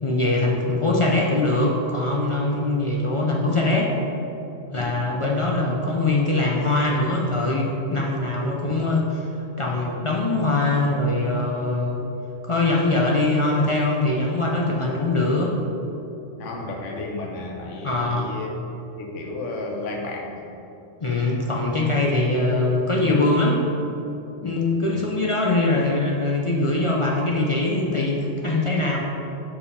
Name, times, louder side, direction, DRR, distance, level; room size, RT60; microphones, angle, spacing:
voice 1, 0.0-3.9 4.7-9.2 9.6-12.0 12.5-15.6 17.8-18.3 21.0-23.6 24.4-29.0, left 2 dB, 45° left, -2 dB, 0.4 m, -22 dB
voice 2, 16.4-18.5 19.0-20.5 24.4-24.6, left 2 dB, 85° left, 0 dB, 1.2 m, -33 dB
5.1 x 4.9 x 5.0 m, 2.9 s
omnidirectional pair, 1.3 m